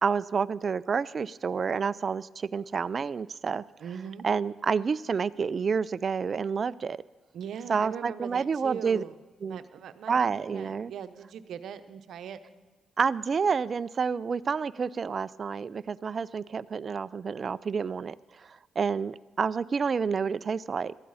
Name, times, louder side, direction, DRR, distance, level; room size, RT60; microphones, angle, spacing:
voice 1, 0.0-3.6 4.2-7.0 7.7-9.0 9.4-9.6 10.1-10.9 13.0-18.1 18.5-20.9, right 5 dB, 45° right, 17 dB, 0.4 m, -29 dB
voice 2, 3.8-4.3 7.3-9.2 9.5-12.4, right 8 dB, 75° right, 10 dB, 0.8 m, -40 dB
18.0 x 13.5 x 4.1 m, 1.3 s
cardioid pair, 80°, 0 cm